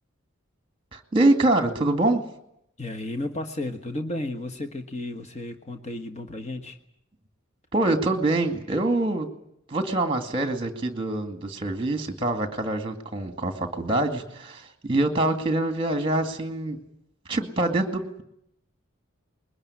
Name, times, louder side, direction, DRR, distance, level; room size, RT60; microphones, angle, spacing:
voice 1, 0.9-2.2 7.7-9.3 9.7-16.8 17.3-18.2, right 2 dB, 25° right, 6 dB, 2.2 m, -25 dB
voice 2, 2.8-6.8, left 1 dB, 30° left, 6 dB, 1.4 m, -33 dB
22.0 x 20.0 x 9.7 m, 0.78 s
head